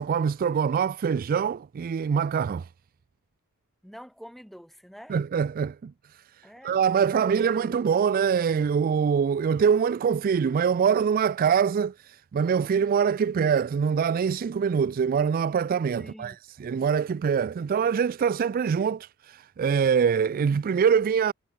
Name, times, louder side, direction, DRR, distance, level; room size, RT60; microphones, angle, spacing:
voice 1, 0.0-2.6 5.1-5.9 6.6-21.3, right 7 dB, 40° right, 0.3 m, -24 dB
voice 2, 3.8-5.2 6.4-7.8 16.0-16.4, equal, ahead, 2.1 m, -46 dB
head